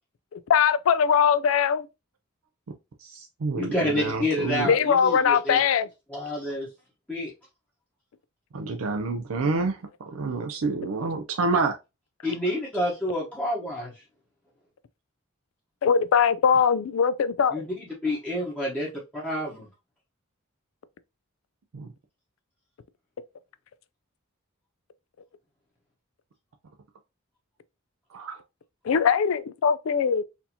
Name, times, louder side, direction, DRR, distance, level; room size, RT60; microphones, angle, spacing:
voice 1, 0.3-1.9 4.6-5.9 15.8-17.6 28.8-30.2, left 7 dB, 70° left, 0.4 m, -21 dB
voice 2, 3.0-4.7 8.5-9.8 10.1-11.7 21.7-21.9 28.1-28.4, right 3 dB, 80° right, 0.5 m, -28 dB
voice 3, 3.5-5.6 6.1-6.7 7.1-7.3 12.2-13.9 17.5-17.7 18.0-19.7, left 1 dB, 5° left, 0.9 m, -28 dB
4.3 x 2.7 x 2.8 m
head